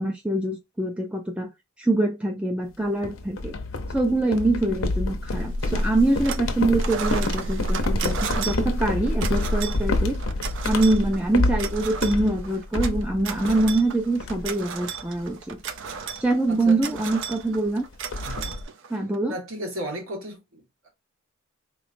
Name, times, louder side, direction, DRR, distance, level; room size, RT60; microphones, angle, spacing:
voice 1, 0.0-1.5 1.8-3.6 3.9-10.1 10.6-15.6 16.2-17.8 18.9-19.4, right 2 dB, 5° right, 0.4 m, -24 dB
sound 1, 3.0-13.9 14.2-14.7 15.0-15.3 15.7-15.9 17.0-17.1 17.3-17.4 17.7-18.6, left 2 dB, 70° left, 0.7 m, -27 dB
sound 2, 5.6-6.5 6.8-19.2, right 6 dB, 60° right, 0.5 m, -35 dB
voice 2, 16.5-16.8 18.2-18.5 19.3-20.9, equal, 80° right, 1.6 m, -35 dB
4.1 x 3.1 x 2.5 m
head